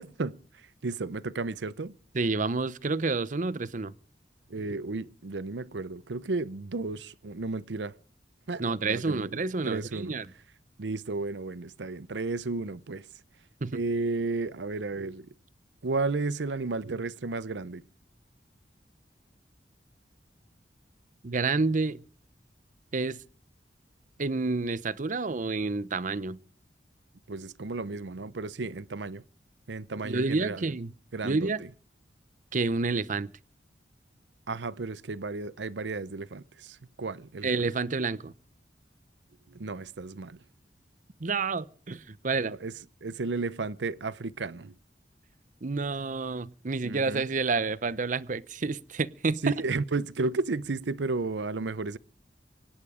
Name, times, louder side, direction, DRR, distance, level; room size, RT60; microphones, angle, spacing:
voice 1, 0.0-1.9 4.5-7.9 8.5-10.2 10.8-13.1 13.7-15.3 15.8-17.8 27.3-29.2 29.7-30.7 31.1-31.7 34.5-37.5 39.5-40.4 42.4-42.7 43.0-44.7 46.8-47.2 49.4-52.0, right 3 dB, 85° right, 0.7 m, -33 dB
voice 2, 2.1-3.9 8.6-9.8 10.1-10.2 13.6-13.8 21.2-22.0 22.9-23.2 24.2-26.4 30.0-30.9 31.2-31.6 32.5-33.3 37.4-38.3 41.2-42.5 45.6-49.5, right 3 dB, 45° right, 0.7 m, -29 dB
24.5 x 10.5 x 5.0 m
head